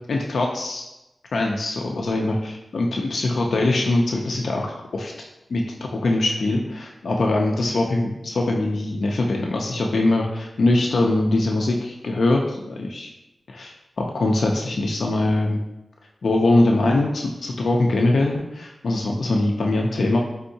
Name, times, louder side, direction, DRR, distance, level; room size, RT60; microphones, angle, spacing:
voice 1, 0.1-0.9 1.3-4.7 4.9-5.1 5.5-5.6 5.9-13.1 13.5-15.6 16.2-20.2, left 2 dB, 80° left, 0 dB, 0.4 m, -22 dB
4.5 x 3.5 x 2.7 m, 0.94 s
wide cardioid pair, 70°, 0 cm